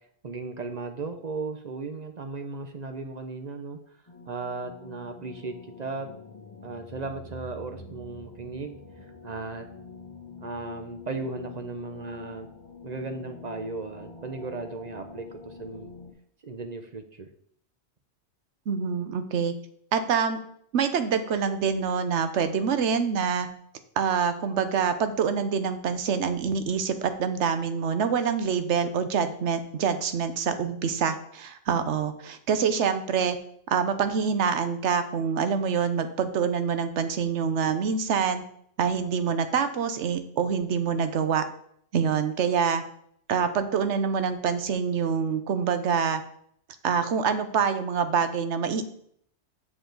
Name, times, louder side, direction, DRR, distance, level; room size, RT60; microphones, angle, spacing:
voice 1, 0.2-3.8 4.2-6.1 6.6-8.8 9.2-9.7 10.4-12.5 12.8-15.9 16.4-17.3, right 3 dB, 45° right, 6 dB, 0.7 m, -36 dB
sound 1, 4.1-16.1, left 4 dB, 30° left, 1.1 m, -45 dB
voice 2, 18.7-19.5 19.9-20.4 20.7-23.5 24.0-33.4 33.7-38.4 38.8-41.5 41.9-42.8 43.3-46.2 46.8-48.8, right 6 dB, 90° right, 10 dB, 1.0 m, -26 dB
7.2 x 6.2 x 3.9 m, 0.66 s
omnidirectional pair, 1.1 m